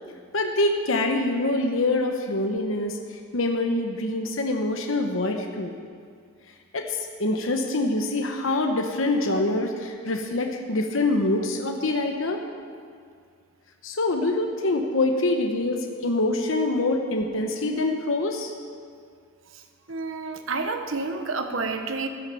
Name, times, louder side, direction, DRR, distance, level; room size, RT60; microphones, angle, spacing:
voice 1, 0.3-3.0 3.3-5.7 6.7-12.4 13.8-18.5, left 2 dB, 70° left, 3 dB, 1.0 m, -25 dB
voice 2, 19.9-22.1, right 3 dB, 70° right, 6 dB, 1.0 m, -29 dB
12.5 x 10.5 x 6.9 m, 2.2 s
head